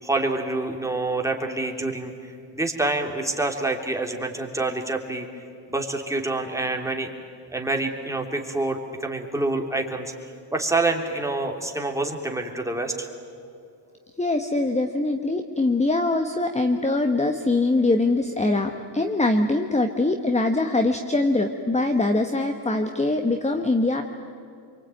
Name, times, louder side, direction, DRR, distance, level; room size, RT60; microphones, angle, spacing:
voice 1, 0.0-5.3 5.7-7.1 7.5-10.1 10.5-13.1, right 2 dB, 5° right, 2 dB, 3.1 m, -27 dB
voice 2, 14.2-24.0, left 2 dB, 15° left, 6 dB, 1.3 m, -23 dB
27.0 x 23.5 x 9.2 m, 2.5 s
cardioid pair, 105°, 45 cm